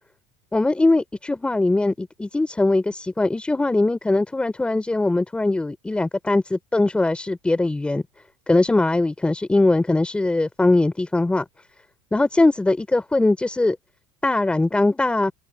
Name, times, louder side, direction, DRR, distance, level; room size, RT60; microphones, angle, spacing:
voice 1, 0.5-8.0 8.5-11.4 12.1-13.8 14.2-15.3, left 2 dB, 5° left, 4.5 m, -21 dB
supercardioid pair, 150°, 15 cm